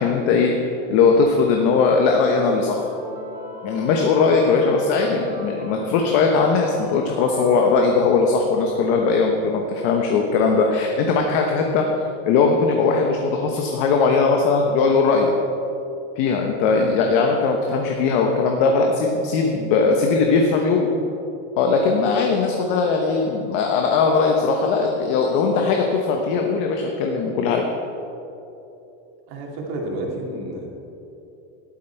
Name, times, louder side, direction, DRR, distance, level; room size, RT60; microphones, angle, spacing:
voice 1, 0.0-2.8 3.6-11.8 12.2-15.3 16.2-20.9 21.6-27.6, left 4 dB, 45° left, 2 dB, 1.1 m, -19 dB
sound 1, 1.5-8.4, left 1 dB, 10° right, 2.9 m, -39 dB
voice 2, 29.3-30.7, right 1 dB, 50° right, -1 dB, 2.5 m, -31 dB
13.0 x 11.5 x 4.5 m, 2.9 s
supercardioid pair, 170°, 38 cm